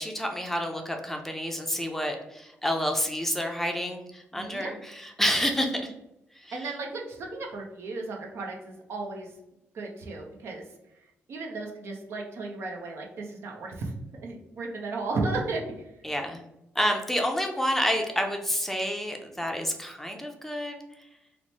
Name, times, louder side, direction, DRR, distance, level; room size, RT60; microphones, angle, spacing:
voice 1, 0.0-5.9 6.4-6.6 16.0-16.4 16.8-20.8, equal, 5° left, 3 dB, 0.5 m, -29 dB
voice 2, 4.3-4.7 6.5-9.3 9.7-10.6 11.3-13.9 14.2-15.9, right 3 dB, 65° right, 1 dB, 0.7 m, -34 dB
3.0 x 2.1 x 4.1 m, 0.85 s
cardioid pair, 90°, 5 cm